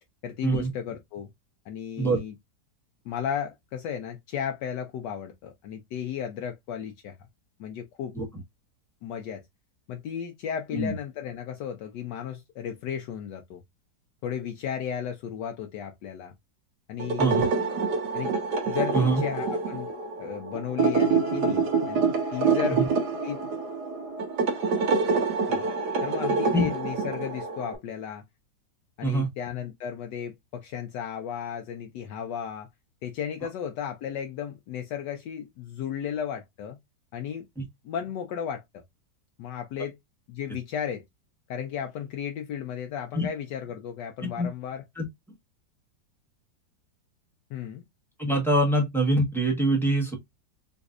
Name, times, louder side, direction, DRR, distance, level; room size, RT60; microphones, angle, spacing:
voice 1, 0.2-1.3 1.7-2.3 3.0-7.2 7.6-8.4 9.0-9.4 9.9-13.6 14.2-16.3 16.9-17.3 18.1-18.3 18.6-19.9 20.2-22.8 23.2-23.4 25.5-25.7 26.0-28.2 29.0-32.7 33.0-36.8 37.1-37.5 37.8-38.6 39.4-40.0 40.3-41.0 41.5-44.8 47.5-47.8, left 8 dB, 75° left, 1.2 m, -34 dB
sound 1, 17.0-27.8, right 4 dB, 70° right, 1.4 m, -26 dB
voice 2, 48.2-50.1, right 1 dB, ahead, 0.8 m, -24 dB
3.9 x 2.6 x 2.4 m
omnidirectional pair, 2.0 m